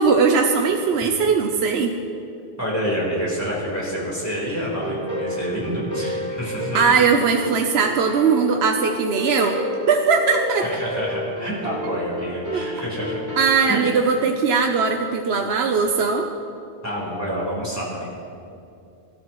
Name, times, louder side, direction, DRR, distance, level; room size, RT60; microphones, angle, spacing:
voice 1, 0.0-2.0 6.7-9.6 9.9-10.7 12.5-12.7 13.4-16.3, right 5 dB, 80° right, 4 dB, 1.0 m, -19 dB
voice 2, 2.6-6.8 10.6-13.2 13.7-13.9 16.8-18.2, equal, 15° left, -6 dB, 4.0 m, -28 dB
sound 1, 4.8-13.5, equal, 15° right, 2.8 m, -30 dB
24.0 x 13.5 x 3.1 m, 2.6 s
omnidirectional pair, 1.1 m